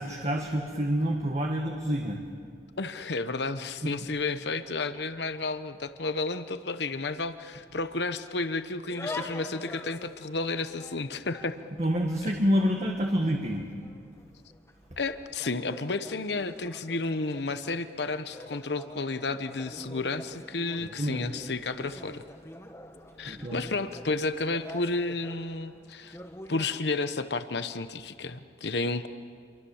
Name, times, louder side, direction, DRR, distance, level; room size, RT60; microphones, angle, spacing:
voice 1, 0.0-2.2 3.8-3.9 11.8-13.7 20.8-21.3 23.2-23.6, equal, 40° right, 1 dB, 1.8 m, -28 dB
voice 2, 2.8-11.6 15.0-22.2 23.2-26.2 26.5-29.1, left 3 dB, 70° left, 11 dB, 1.0 m, -32 dB
sound 1, 8.9-26.8, left 1 dB, 15° left, 1.6 m, -46 dB
28.0 x 24.0 x 7.2 m, 2.2 s
head